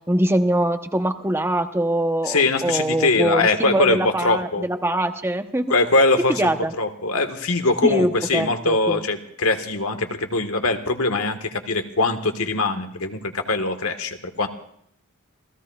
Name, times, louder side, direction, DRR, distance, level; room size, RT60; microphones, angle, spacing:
voice 1, 0.1-5.6 6.3-6.7 7.8-9.0, right 1 dB, 10° right, 7 dB, 0.9 m, -23 dB
voice 2, 2.2-4.7 5.7-6.5 6.8-14.5, left 3 dB, 80° left, 6 dB, 1.5 m, -22 dB
29.0 x 17.0 x 2.4 m, 0.67 s
head